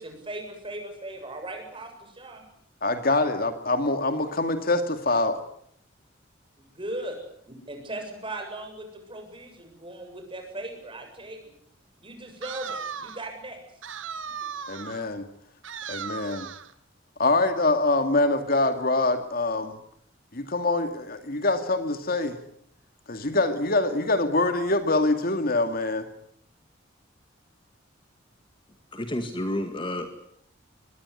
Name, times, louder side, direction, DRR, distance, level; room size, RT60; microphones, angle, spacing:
voice 1, 0.0-2.4 6.6-7.2 7.5-11.5 12.0-13.6, right 1 dB, 25° right, 4 dB, 7.4 m, -38 dB
voice 2, 2.8-5.4 14.7-15.3 15.9-16.5 17.2-19.8 20.3-22.4 23.1-26.1, left 2 dB, 50° left, 8 dB, 2.3 m, -24 dB
sound 1, 12.4-13.3 13.8-15.1 15.6-16.7, right 6 dB, 85° right, 1.5 m, -37 dB
voice 3, 28.9-30.1, left 1 dB, 25° left, 7 dB, 2.0 m, -30 dB
24.0 x 20.5 x 9.8 m, 0.70 s
head